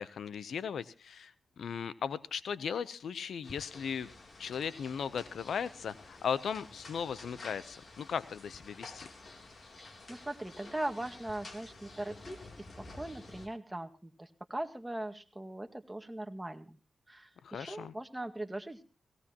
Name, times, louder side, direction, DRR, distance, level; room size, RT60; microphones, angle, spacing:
voice 1, 0.0-4.1 4.4-9.1 17.4-17.9, left 7 dB, 85° left, 16 dB, 0.7 m, -37 dB
sound 1, 3.4-13.5, left 2 dB, 55° left, 3.0 m, -51 dB
voice 2, 9.8-16.8 17.1-18.8, right 1 dB, 15° right, 5 dB, 1.9 m, -40 dB
19.0 x 17.5 x 2.9 m, 0.34 s
cardioid pair, 45°, 0 cm